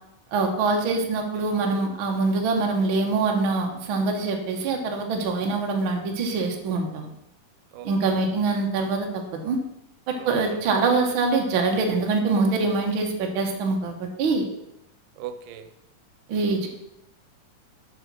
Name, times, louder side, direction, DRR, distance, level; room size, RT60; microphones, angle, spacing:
voice 1, 0.3-7.1 7.8-9.6 10.1-14.4 16.3-16.7, right 3 dB, 55° right, 2 dB, 1.6 m, -24 dB
voice 2, 7.7-8.1 10.2-10.6 15.2-15.7, right 9 dB, 85° right, 9 dB, 2.4 m, -39 dB
8.1 x 5.5 x 6.1 m, 0.84 s
omnidirectional pair, 3.7 m